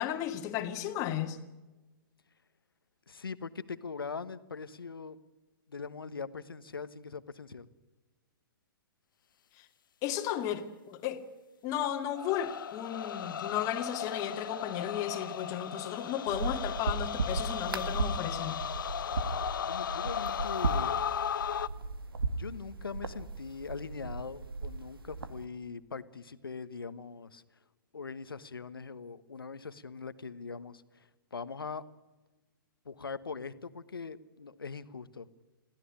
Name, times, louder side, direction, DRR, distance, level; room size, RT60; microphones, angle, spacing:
voice 1, 0.0-1.4 9.6-9.7 10.0-11.2 11.6-18.6, left 10 dB, 30° left, 2.3 m, -34 dB
voice 2, 3.1-5.2 5.7-7.7 19.0-19.2 19.6-21.0 22.3-27.4 27.9-31.9 32.8-35.3, left 5 dB, 85° left, 1.3 m, -42 dB
sound 1, 12.1-21.7, left 8 dB, 65° left, 0.8 m, -36 dB
sound 2, 16.3-25.4, right 3 dB, 80° right, 1.8 m, -36 dB
22.5 x 15.5 x 10.0 m
hypercardioid pair, 125°, 12 cm